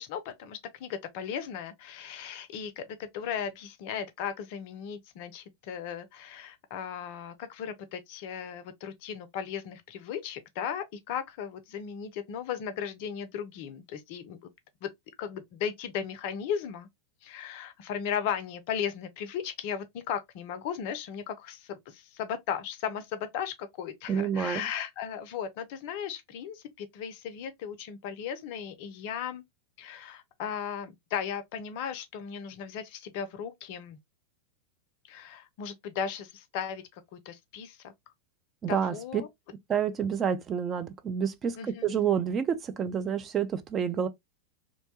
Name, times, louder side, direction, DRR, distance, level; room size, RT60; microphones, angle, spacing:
voice 1, 0.0-14.4 14.8-14.9 15.2-16.9 17.2-29.4 29.8-34.0 35.1-36.8 37.3-37.9 38.7-39.3 41.6-42.0, left 8 dB, 45° left, 0.5 m, -36 dB
voice 2, 24.1-24.7 38.6-39.2 39.7-41.6 41.8-44.1, right 8 dB, 25° right, 0.4 m, -28 dB
2.8 x 2.2 x 2.6 m
figure-of-eight pair, 90°, 0 cm